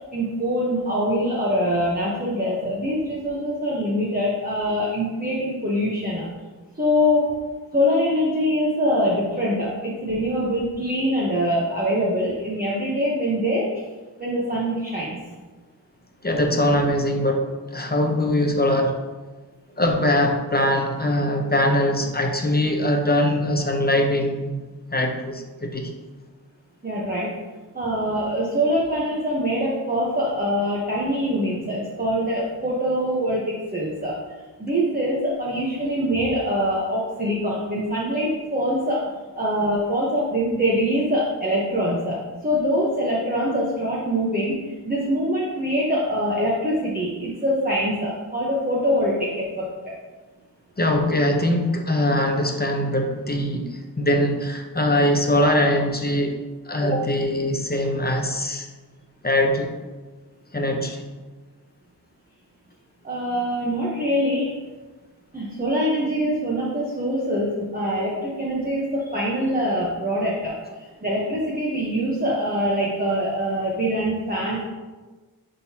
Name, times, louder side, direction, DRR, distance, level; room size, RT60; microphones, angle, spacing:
voice 1, 0.0-6.2 6.7-7.3 7.7-13.7 14.2-15.2 26.8-27.3 27.7-33.4 33.7-39.0 39.4-49.9 63.0-64.6 65.3-74.7, equal, 20° right, -6 dB, 1.0 m, -24 dB
voice 2, 16.2-19.0 19.8-24.6 24.9-25.9 50.8-58.7 59.2-59.7 60.5-61.0, left 1 dB, 25° left, 3 dB, 0.8 m, -22 dB
10.5 x 3.8 x 2.9 m, 1.3 s
wide cardioid pair, 110°, 41 cm